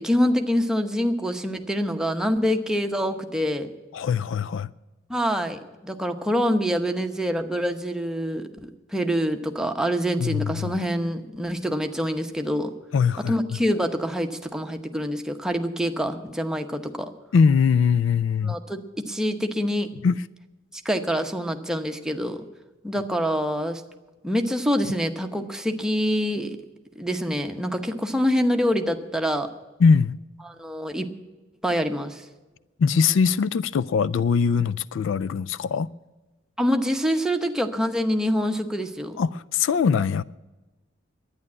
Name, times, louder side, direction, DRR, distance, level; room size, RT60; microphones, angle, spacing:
voice 1, 0.0-3.7 5.1-12.7 13.3-17.1 18.4-19.9 20.8-22.4 22.8-23.8 24.2-26.6 27.0-29.5 30.4-31.1 31.6-32.2 36.6-39.2, equal, 5° right, 0.9 m, -25 dB
voice 2, 3.9-4.7 10.2-10.7 12.9-13.4 17.3-18.6 20.0-20.2 29.8-30.2 32.8-35.9 39.2-40.2, left 6 dB, 70° left, 0.3 m, -21 dB
11.0 x 9.6 x 9.6 m
head